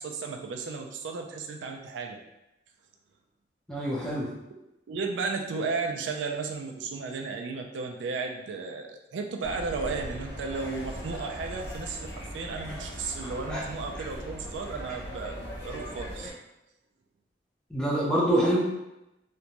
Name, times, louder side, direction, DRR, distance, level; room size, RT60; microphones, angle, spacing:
voice 1, 0.0-2.2 4.9-16.3, right 4 dB, 85° right, 3 dB, 0.3 m, -34 dB
voice 2, 3.7-4.3 13.5-13.6 17.7-18.6, right 1 dB, 5° left, -6 dB, 0.6 m, -25 dB
sound 1, 9.4-16.3, equal, 65° left, 0.7 m, -39 dB
2.5 x 2.2 x 2.9 m, 0.91 s
head